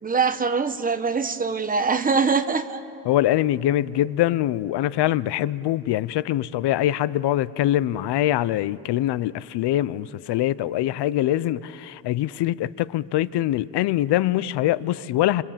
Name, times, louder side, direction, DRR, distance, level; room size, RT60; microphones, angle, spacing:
voice 1, 0.0-2.8, right 5 dB, 20° right, 10 dB, 1.0 m, -23 dB
voice 2, 3.1-15.4, left 13 dB, 70° left, 18 dB, 0.7 m, -23 dB
30.0 x 26.5 x 7.5 m, 2.9 s
cardioid pair, 150°, 42 cm